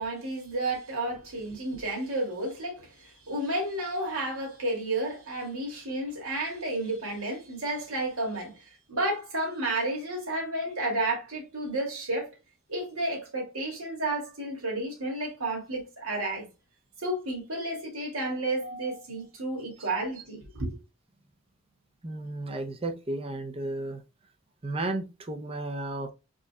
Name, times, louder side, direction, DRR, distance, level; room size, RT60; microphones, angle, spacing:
voice 1, 0.0-12.3 12.7-16.4 17.0-20.7, right 2 dB, 80° right, 2.6 m, -31 dB
voice 2, 22.0-24.0 24.6-26.1, right 2 dB, 25° right, 0.6 m, -33 dB
5.1 x 4.0 x 2.3 m
head